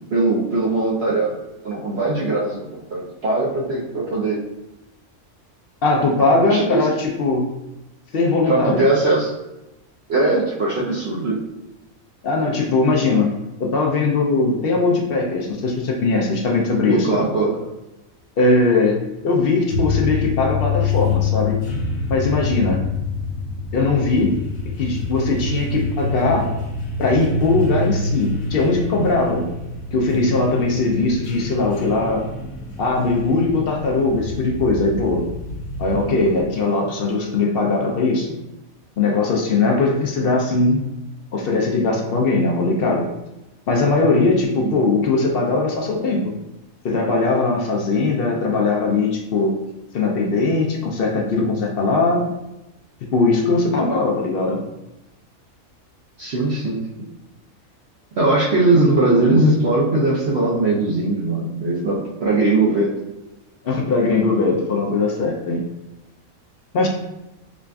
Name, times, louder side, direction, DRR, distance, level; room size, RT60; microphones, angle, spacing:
voice 1, 0.1-1.4 1.6-4.4 6.4-6.9 8.5-9.3 10.1-11.4 16.9-17.6 44.6-44.8 56.2-57.1 58.2-62.9, right 2 dB, 60° right, -6 dB, 0.8 m, -20 dB
voice 2, 5.8-7.5 8.1-8.9 12.2-13.3 13.6-17.1 18.4-19.0 19.2-21.6 22.1-22.8 23.7-24.3 24.8-26.5 27.0-29.5 29.9-32.2 32.8-35.2 35.8-38.3 39.0-40.8 41.3-43.1 43.7-46.3 46.8-49.6 49.9-52.3 53.1-54.6 63.6-65.6 66.7-66.9, left 3 dB, 65° left, 0 dB, 0.6 m, -20 dB
sound 1, 19.7-36.5, left 3 dB, 80° left, 1.0 m, -26 dB
4.9 x 2.4 x 2.2 m, 0.96 s
omnidirectional pair, 1.5 m